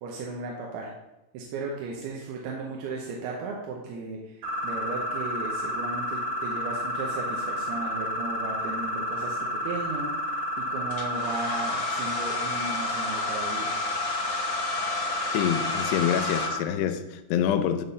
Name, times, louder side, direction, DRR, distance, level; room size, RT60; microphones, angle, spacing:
voice 1, 0.0-0.9 1.3-13.8, right 3 dB, 80° right, 2.8 m, -36 dB
sound 1, 4.4-16.6, equal, 65° right, 1.8 m, -31 dB
Domestic sounds home sounds, 10.9-16.5, left 5 dB, 65° left, 2.1 m, -34 dB
voice 2, 15.3-17.8, left 9 dB, 85° left, 2.8 m, -26 dB
11.0 x 3.7 x 6.9 m
omnidirectional pair, 4.7 m